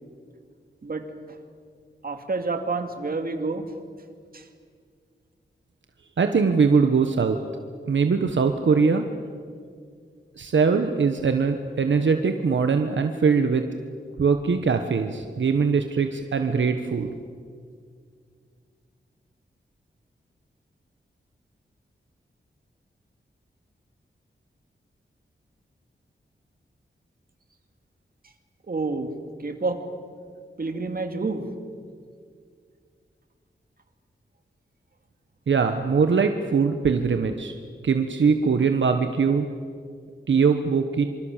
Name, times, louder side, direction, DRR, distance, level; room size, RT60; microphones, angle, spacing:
voice 1, 0.8-1.4 2.0-3.7 4.3-4.5 28.7-29.1 29.4-29.8 30.6-31.5, right 3 dB, 50° right, 6 dB, 2.6 m, -29 dB
voice 2, 6.2-7.4 7.9-9.1 10.4-13.6 14.2-17.1 35.5-37.5 37.8-39.5 40.3-41.0, right 5 dB, 75° right, 6 dB, 1.3 m, -21 dB
26.5 x 26.0 x 7.5 m, 2.1 s
wide cardioid pair, 130°, 19 cm